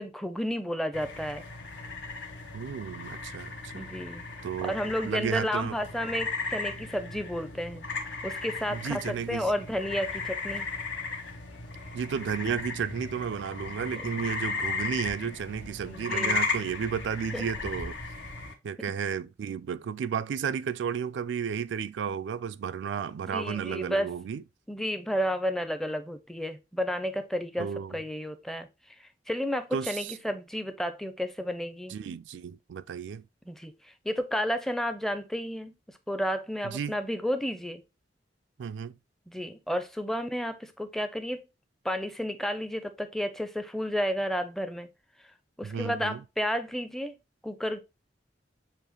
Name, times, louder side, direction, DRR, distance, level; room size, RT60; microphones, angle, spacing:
voice 1, 0.0-1.4 3.7-4.2 4.6-7.9 8.2-9.0 9.3-10.7 15.9-16.4 17.3-17.4 23.3-24.1 24.7-28.7 29.3-32.0 33.5-33.7 34.0-35.7 36.1-37.8 39.3-41.4 41.8-44.9 45.6-47.2 47.4-47.8, equal, ahead, 0.5 m, -31 dB
sound 1, 0.9-18.5, left 3 dB, 80° left, 1.0 m, -36 dB
voice 2, 2.5-3.9 4.4-5.7 8.7-9.5 11.9-17.9 18.6-24.4 27.6-28.0 29.7-30.2 31.9-33.3 36.6-37.0 38.6-39.0 45.6-46.2, right 7 dB, 80° right, 0.3 m, -33 dB
7.0 x 2.5 x 3.0 m
head